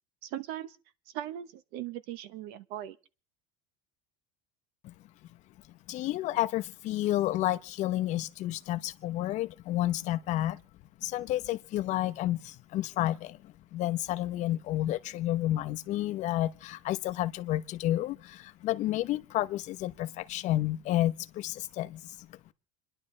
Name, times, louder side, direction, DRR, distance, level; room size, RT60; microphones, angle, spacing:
voice 1, 0.2-0.8 1.1-3.0, right 12 dB, 60° right, 1.0 m, -39 dB
voice 2, 5.9-10.6 11.0-22.4, left 14 dB, 45° left, 0.8 m, -31 dB
29.0 x 11.0 x 3.2 m
cardioid pair, 155°, 18 cm